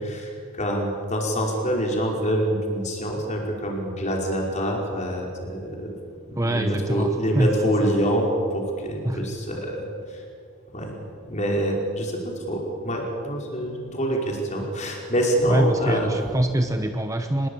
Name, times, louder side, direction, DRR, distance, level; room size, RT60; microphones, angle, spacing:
voice 1, 0.1-6.0 6.3-9.8 10.1-10.2 10.7-10.9 11.3-16.1, equal, 35° left, 0 dB, 5.0 m, -26 dB
voice 2, 6.4-7.9 9.0-9.3 15.5-17.5, right 1 dB, 15° right, 6 dB, 0.9 m, -24 dB
25.0 x 21.0 x 8.9 m, 2.3 s
head